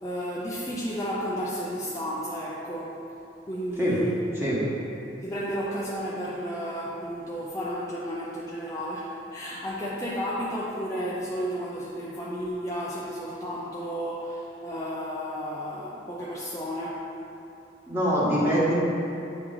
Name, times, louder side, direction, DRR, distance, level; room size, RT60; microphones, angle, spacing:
voice 1, 0.0-3.0 3.4-4.3 5.2-17.1, equal, 15° left, -6 dB, 0.4 m, -32 dB
voice 2, 17.9-18.7, equal, 10° right, -8 dB, 1.3 m, -23 dB
9.1 x 3.1 x 3.7 m, 2.9 s
head